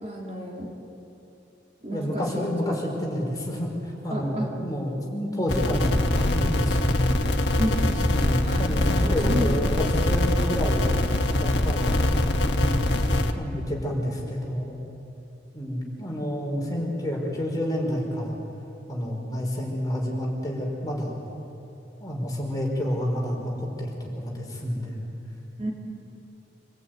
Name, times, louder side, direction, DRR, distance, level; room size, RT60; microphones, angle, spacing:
voice 1, 0.0-0.7 1.8-2.4 4.1-4.5 7.6-8.0 8.4-9.5 25.6-25.7, equal, 40° right, -2 dB, 3.8 m, -31 dB
voice 2, 1.9-7.4 7.9-10.8 11.4-12.0 12.6-14.7 15.5-18.4 18.9-21.2 22.0-25.1, equal, 20° left, -1 dB, 4.8 m, -29 dB
sound 1, 5.5-13.3, left 1 dB, 80° left, 1.6 m, -23 dB
26.5 x 18.5 x 9.3 m, 2.9 s
head